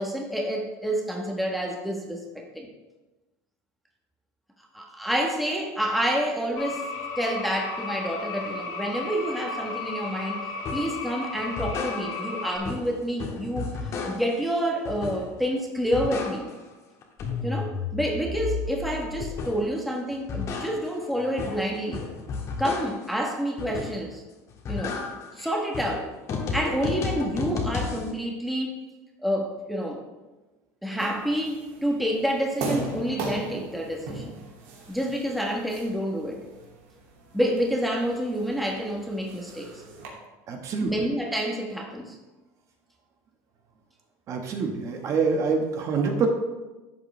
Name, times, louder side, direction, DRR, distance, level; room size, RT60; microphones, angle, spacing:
voice 1, 0.0-2.7 4.7-6.9 7.2-13.7 14.0-16.5 17.4-22.0 22.6-24.2 24.7-25.0 25.4-26.1 26.5-28.8 29.2-30.0 30.8-34.3 34.9-36.4 37.3-39.7 40.8-42.1, equal, ahead, 0 dB, 1.3 m, -28 dB
sound 1, 6.6-12.6, left 4 dB, 60° left, 1.9 m, -34 dB
sound 2, 10.7-11.0 11.4-12.4 12.6-14.4 14.9-15.5 15.8-16.7 17.0-19.8 20.1-23.1 23.6-24.2 24.5-28.1, left 4 dB, 40° left, 1.6 m, -33 dB
sound 3, 31.0-40.1, right 3 dB, 80° right, 2.6 m, -39 dB
voice 2, 40.5-40.9 44.3-46.3, right 5 dB, 40° right, 3 dB, 1.4 m, -26 dB
11.5 x 7.8 x 3.3 m, 1.1 s
supercardioid pair, 135°, 8 cm